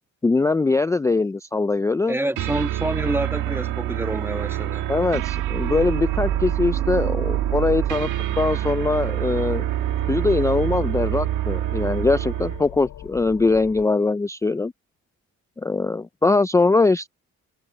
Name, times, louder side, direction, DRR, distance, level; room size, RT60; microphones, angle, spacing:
voice 1, 0.2-2.2 4.9-8.1 8.4-9.6 10.1-14.7 15.6-17.1, left 3 dB, 10° left, 0.3 m, -21 dB
voice 2, 2.1-4.9, right 1 dB, 10° right, 1.6 m, -27 dB
sound 1, 2.4-12.7, right 13 dB, 85° right, 1.6 m, -26 dB
sound 2, 5.5-13.8, left 12 dB, 75° left, 6.7 m, -41 dB
cardioid pair, 90°, 30 cm